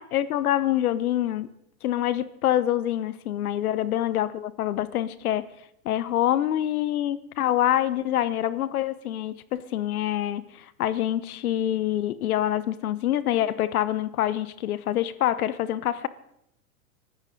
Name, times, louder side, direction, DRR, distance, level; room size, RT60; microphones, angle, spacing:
voice 1, 0.0-1.5 1.8-5.5 5.8-16.1, left 12 dB, 70° left, 1.0 m, -26 dB
24.0 x 13.5 x 3.9 m
hypercardioid pair, 120°, 46 cm